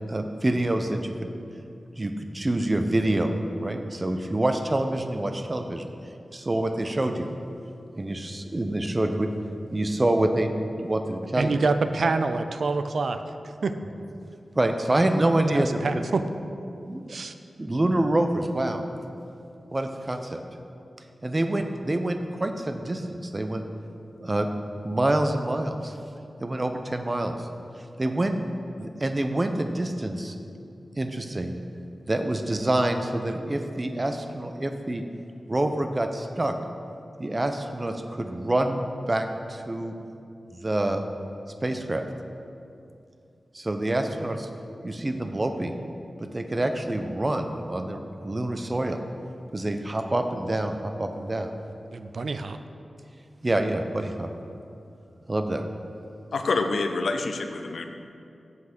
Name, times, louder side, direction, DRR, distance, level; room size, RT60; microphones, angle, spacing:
voice 1, 0.1-1.3 2.0-5.8 6.3-7.3 8.0-9.3 9.7-10.5 10.8-11.6 14.6-16.0 16.8-17.2 17.6-18.8 19.7-20.4 21.2-23.6 24.2-24.5 24.8-25.9 26.4-27.5 28.0-28.4 28.8-30.4 31.0-31.6 32.1-35.0 35.5-36.6 37.2-39.9 40.5-41.0 41.6-42.0 43.5-44.5 44.8-45.7 46.2-49.0 49.5-51.5 53.4-54.3 55.3-55.6, right 1 dB, 35° right, 7 dB, 0.8 m, -26 dB
voice 2, 11.4-13.2 13.6-13.7 15.5-16.2 17.1-17.3 51.9-52.6, right 3 dB, 75° right, 9 dB, 0.4 m, -26 dB
voice 3, 56.3-57.9, left 3 dB, 80° left, 6 dB, 0.6 m, -27 dB
7.8 x 5.8 x 6.0 m, 2.6 s
cardioid pair, 40°, 0 cm